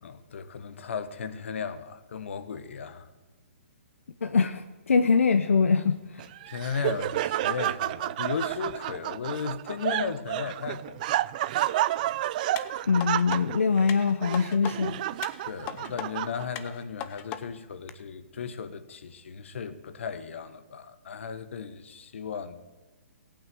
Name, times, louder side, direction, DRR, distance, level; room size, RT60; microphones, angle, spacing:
voice 1, 0.0-3.1 6.5-11.3 15.4-22.6, left 6 dB, 70° left, 1.3 m, -35 dB
voice 2, 4.2-6.3 12.9-15.0, left 5 dB, 90° left, 0.8 m, -23 dB
Laughter, 6.2-16.7, right 14 dB, 40° right, 0.4 m, -30 dB
sound 1, 12.6-13.4 13.9-14.7 15.2-16.1 16.6-17.4 17.9-18.0, left 11 dB, 25° left, 0.7 m, -38 dB
15.0 x 9.0 x 7.8 m
hypercardioid pair, 145°, 7 cm